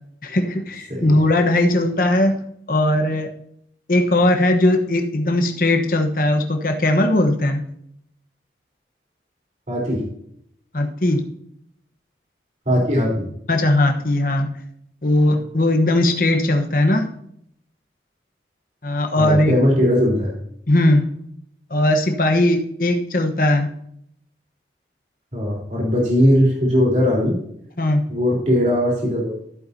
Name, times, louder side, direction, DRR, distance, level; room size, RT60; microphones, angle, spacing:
voice 1, 0.2-2.4 2.7-3.3 3.9-7.6 10.7-11.2 13.5-14.5 15.0-17.1 18.8-19.5 20.7-21.0 21.7-23.7 27.8-28.0, left 1 dB, 50° left, 5 dB, 1.1 m, -18 dB
voice 2, 9.7-10.0 12.7-13.3 19.2-20.3 25.3-27.4 28.1-29.4, equal, 40° right, -3 dB, 3.8 m, -19 dB
14.0 x 8.6 x 2.8 m, 0.70 s
head